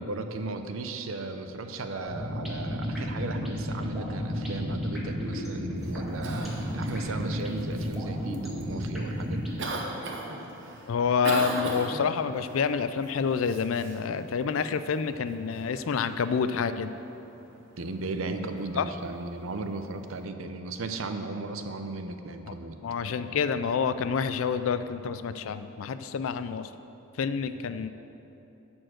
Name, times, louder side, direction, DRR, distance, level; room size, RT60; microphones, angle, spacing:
voice 1, 0.0-9.6 17.8-22.8, right 2 dB, 80° right, 7 dB, 0.7 m, -36 dB
sound 1, 1.9-9.6, equal, ahead, 1.7 m, -32 dB
Cough, 5.8-20.2, right 2 dB, 65° right, 1.0 m, -41 dB
voice 2, 10.9-16.9 18.7-18.8 22.5-22.6 22.8-26.7 27.2-27.9, left 6 dB, 75° left, 11 dB, 0.4 m, -28 dB
11.0 x 4.5 x 7.7 m, 3.0 s
head